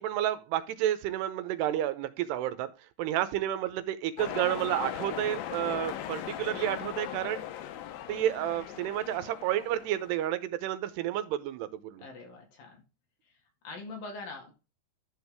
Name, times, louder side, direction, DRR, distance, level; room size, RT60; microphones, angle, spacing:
voice 1, 0.0-2.7 3.0-7.5 8.1-12.0, right 12 dB, 85° right, 11 dB, 2.8 m, -31 dB
sound 1, 4.2-10.3, left 11 dB, 75° left, 2.3 m, -39 dB
voice 2, 12.0-12.8 13.3-13.4 13.6-14.5, left 3 dB, 60° left, 2 dB, 3.7 m, -43 dB
11.5 x 6.2 x 3.5 m, 0.30 s
omnidirectional pair, 4.9 m